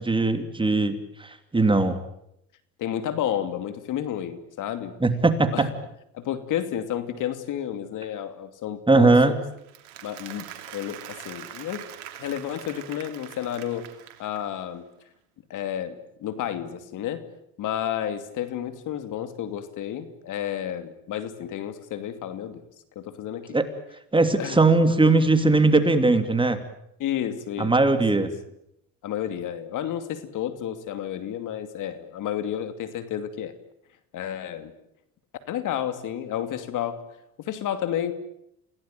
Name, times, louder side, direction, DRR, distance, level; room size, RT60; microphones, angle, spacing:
voice 1, 0.0-2.0 5.0-5.7 8.9-9.3 23.5-23.6 24.1-26.6 27.6-28.3, right 3 dB, 15° right, 9 dB, 2.8 m, -20 dB
voice 2, 2.8-5.0 5.5-5.7 6.1-9.3 10.0-11.9 12.2-13.9 14.2-14.8 15.5-17.2 17.6-22.6 22.9-23.6 24.3-24.6 27.0-27.7 28.1-28.3 29.0-33.5 34.1-34.7 35.5-37.0 37.4-38.1, left 10 dB, 55° left, 10 dB, 2.7 m, -31 dB
Applause, 9.6-14.6, right 11 dB, 90° right, 3.1 m, -43 dB
27.5 x 17.5 x 9.2 m, 0.78 s
supercardioid pair, 90°, 37 cm